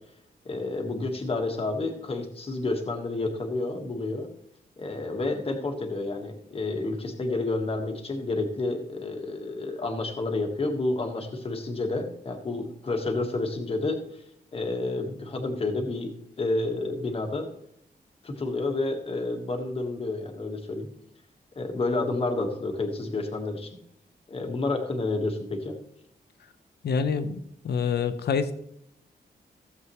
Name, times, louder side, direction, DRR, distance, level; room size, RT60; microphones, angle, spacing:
voice 1, 0.4-4.3 4.8-14.0 14.5-17.5 18.2-20.9 21.5-23.7 24.3-25.8, left 2 dB, 35° left, 3 dB, 1.4 m, -30 dB
voice 2, 26.8-27.4 27.6-28.5, left 6 dB, 90° left, 10 dB, 0.9 m, -26 dB
15.5 x 7.5 x 3.1 m, 0.74 s
wide cardioid pair, 160°, 16 cm